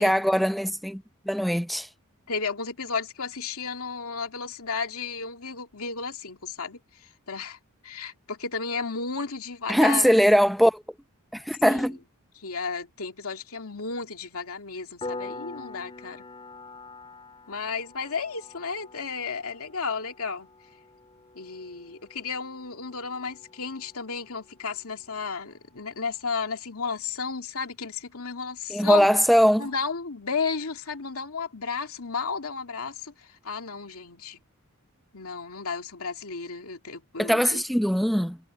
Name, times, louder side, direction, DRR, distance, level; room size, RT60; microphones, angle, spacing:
voice 1, 0.0-1.9 9.7-10.8 11.3-12.0 28.7-29.7 37.2-38.4, equal, ahead, 0.6 m, -21 dB
voice 2, 2.3-7.6 7.8-10.1 11.7-11.9 12.4-16.2 17.5-20.5 21.3-29.1 29.6-34.4 35.1-37.6, left 5 dB, 75° left, 2.5 m, -33 dB
Piano, 15.0-25.4, left 3 dB, 25° left, 4.3 m, -45 dB
head